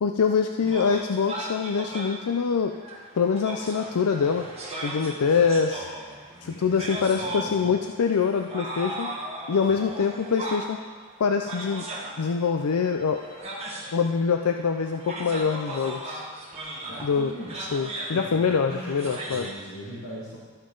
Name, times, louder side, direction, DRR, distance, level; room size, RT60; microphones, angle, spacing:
voice 1, 0.0-2.7 3.1-4.5 4.8-5.9 6.4-9.1 9.5-10.8 11.2-11.8 12.2-13.2 13.9-16.2 17.0-17.3 17.6-19.5, left 6 dB, 85° left, 5 dB, 0.5 m, -24 dB
sound 1, 0.7-19.5, right 1 dB, 30° right, 1.6 m, -38 dB
voice 2, 5.2-7.8 9.7-9.8 16.8-17.8 18.1-20.4, equal, 65° left, -7 dB, 2.0 m, -41 dB
12.5 x 8.7 x 3.9 m, 1.4 s
head